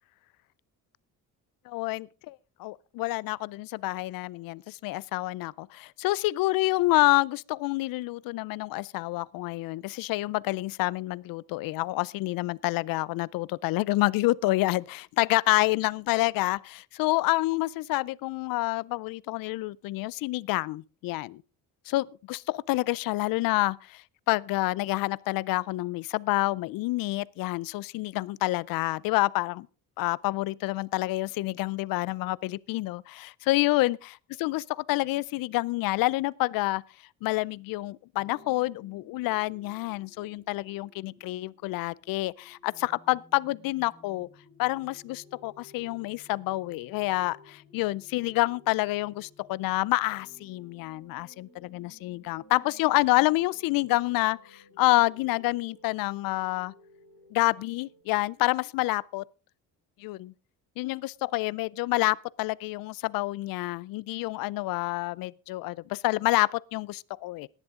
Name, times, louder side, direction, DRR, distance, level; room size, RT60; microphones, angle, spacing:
voice 1, 1.7-21.4 21.9-29.7 30.0-34.0 34.4-36.8 37.2-44.3 44.6-56.7 57.3-59.2 60.0-60.3 60.8-67.5, left 19 dB, 85° left, 0.5 m, -28 dB
sound 1, 38.1-58.0, left 2 dB, 20° left, 4.9 m, -57 dB
17.5 x 11.0 x 3.7 m
cardioid pair, 165°, 33 cm